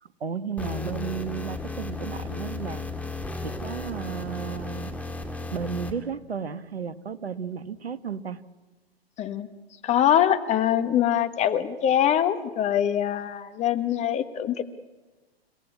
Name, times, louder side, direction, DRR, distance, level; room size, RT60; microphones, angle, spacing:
voice 1, 0.0-2.8 3.4-4.9 5.5-8.4, right 6 dB, 75° right, 14 dB, 1.3 m, -33 dB
sound 1, 0.6-5.9, left 3 dB, 5° left, 2.2 m, -34 dB
voice 2, 9.8-14.6, left 10 dB, 20° left, 11 dB, 1.3 m, -23 dB
30.0 x 17.0 x 8.5 m, 1.2 s
figure-of-eight pair, 110°, 31 cm